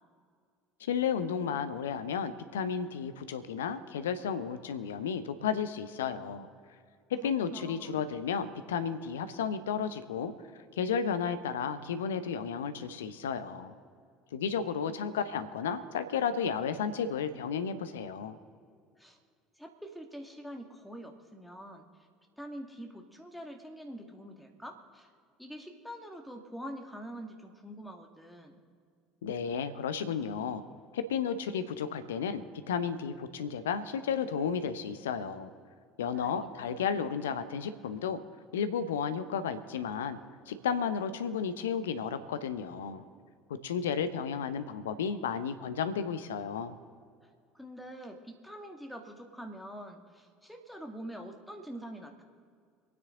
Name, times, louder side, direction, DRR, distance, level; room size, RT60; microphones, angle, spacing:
voice 1, 0.8-6.5 7.1-10.3 10.8-13.7 14.3-18.4 29.2-30.6 30.9-35.5 36.0-38.2 38.5-40.2 40.5-43.0 43.5-46.7, left 7 dB, 70° left, 11 dB, 0.8 m, -33 dB
voice 2, 7.2-7.9 19.0-19.2 19.6-21.8 22.4-25.1 25.4-28.6 36.0-36.7 47.5-52.2, equal, ahead, 3 dB, 1.9 m, -45 dB
26.0 x 9.6 x 3.8 m, 2.2 s
figure-of-eight pair, 65°, 0 cm